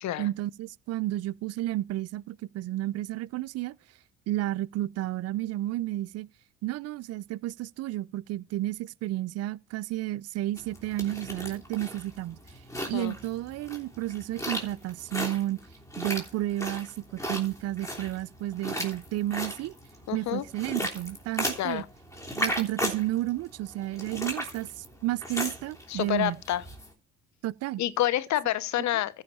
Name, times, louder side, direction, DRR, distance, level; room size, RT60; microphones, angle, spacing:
voice 1, 0.2-3.8 4.3-6.3 6.6-12.4 12.9-15.6 16.0-19.7 20.1-21.8 22.4-26.4 27.4-27.8, right 15 dB, 50° right, 0.4 m, -32 dB
sound 1, 10.6-26.9, equal, 10° left, 3.2 m, -36 dB
voice 2, 20.1-20.4 21.6-21.8 25.9-26.6 27.8-29.2, left 13 dB, 55° left, 0.9 m, -28 dB
14.5 x 5.5 x 4.3 m
hypercardioid pair, 55°, 34 cm